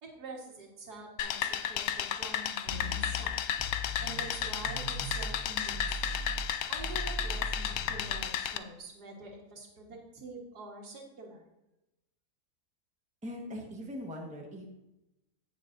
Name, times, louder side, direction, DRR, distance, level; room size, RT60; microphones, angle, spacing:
voice 1, 0.0-3.4 4.0-6.2 6.7-11.4, right 2 dB, 85° right, 0 dB, 2.1 m, -46 dB
sound 1, 1.2-8.6, left 10 dB, 70° left, 1.0 m, -33 dB
sound 2, 2.7-5.4 5.7-8.1, left 1 dB, 45° left, 3.2 m, -39 dB
voice 2, 13.2-14.6, left 1 dB, 5° right, -1 dB, 1.1 m, -41 dB
16.5 x 6.4 x 2.6 m, 0.93 s
omnidirectional pair, 1.7 m